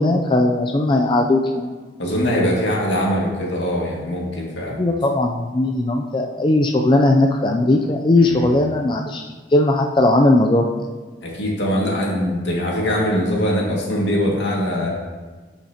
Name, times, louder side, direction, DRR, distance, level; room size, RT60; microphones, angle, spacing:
voice 1, 0.0-1.8 4.8-9.2 9.5-10.9, left 2 dB, 25° left, 2 dB, 0.4 m, -18 dB
voice 2, 2.0-4.8 8.2-8.5 11.2-14.9, equal, 75° left, -3 dB, 2.1 m, -22 dB
12.0 x 5.8 x 2.9 m, 1.4 s
head